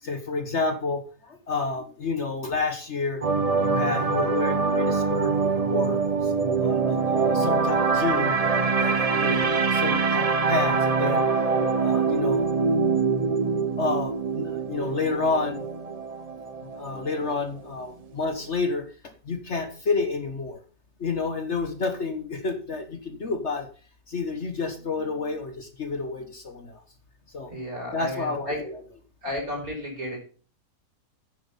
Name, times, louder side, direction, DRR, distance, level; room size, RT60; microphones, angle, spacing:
voice 1, 0.0-3.2 3.6-8.3 8.8-11.2 11.8-12.6 13.8-15.6 16.8-18.8 19.2-20.6 21.0-23.7 24.1-26.8 27.3-27.5 27.9-28.8, left 4 dB, 45° left, 6 dB, 1.4 m, -30 dB
sound 1, 3.2-17.4 17.7-17.9, right 4 dB, 40° right, 0.5 m, -24 dB
voice 2, 27.5-28.6 29.2-30.2, left 1 dB, 60° right, -1 dB, 5.8 m, -33 dB
9.7 x 7.7 x 5.5 m, 0.39 s
omnidirectional pair, 1.7 m